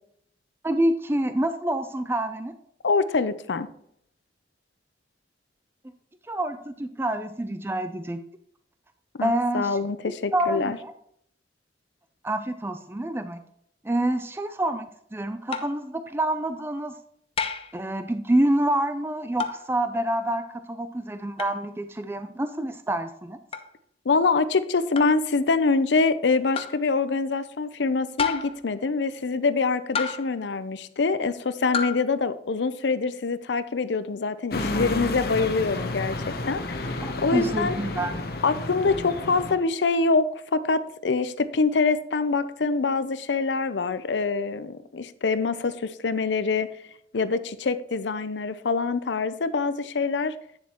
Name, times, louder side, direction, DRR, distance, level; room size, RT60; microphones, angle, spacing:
voice 1, 0.6-2.5 6.3-8.2 9.2-9.8 10.1-10.9 12.2-13.4 13.8-16.9 17.7-23.4 37.0-38.1, right 1 dB, 15° right, 9 dB, 0.4 m, -27 dB
voice 2, 2.8-3.7 9.2-10.8 24.1-36.2 36.4-37.8 38.4-46.7 47.1-50.3, left 4 dB, 85° left, 13 dB, 0.6 m, -25 dB
sound 1, 15.5-15.8 17.4-17.8 19.4-19.7 21.4-21.6 23.5-23.7 25.0-25.2 26.5-26.8 28.2-28.6 29.9-30.4 31.7-32.0, left 6 dB, 35° left, 0.6 m, -30 dB
sound 2, 34.5-39.5, left 2 dB, 60° left, 0.9 m, -31 dB
9.6 x 7.1 x 3.0 m, 0.69 s
head